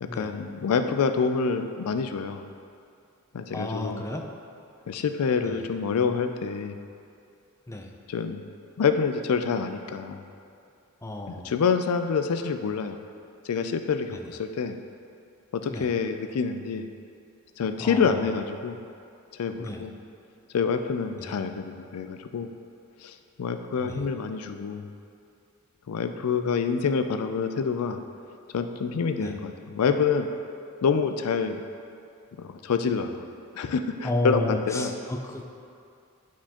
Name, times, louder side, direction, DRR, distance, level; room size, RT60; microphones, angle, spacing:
voice 1, 0.0-2.4 3.3-4.1 4.9-6.8 8.1-8.4 8.8-10.3 11.3-13.0 13.4-14.8 15.5-16.9 17.6-18.8 19.3-19.9 20.5-22.5 23.0-24.9 25.9-28.0 28.5-30.3 30.8-31.6 32.4-33.2 33.5-34.9, left 5 dB, 80° left, 7 dB, 0.4 m, -27 dB
voice 2, 3.5-4.2 5.4-5.6 7.7-7.9 11.0-11.5 14.1-14.2 15.7-15.9 17.8-18.2 19.6-19.8 21.2-21.3 23.8-24.0 29.2-29.3 34.0-35.5, left 1 dB, 15° left, 2 dB, 0.5 m, -32 dB
11.5 x 4.5 x 2.9 m, 2.5 s
head